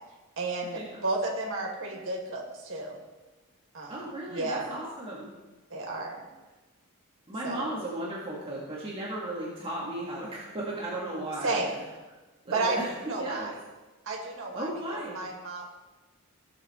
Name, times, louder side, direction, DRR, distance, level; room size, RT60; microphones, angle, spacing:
voice 1, 0.4-3.0 3.7-4.7 5.7-6.3 7.4-7.7 11.4-11.7 12.5-13.6 14.0-15.7, right 2 dB, 65° right, -1 dB, 2.4 m, -32 dB
voice 2, 3.9-5.3 7.3-11.6 12.5-12.8 13.1-13.5 14.6-15.2, right 1 dB, 25° right, -5 dB, 1.8 m, -35 dB
16.0 x 6.8 x 4.3 m, 1.2 s
head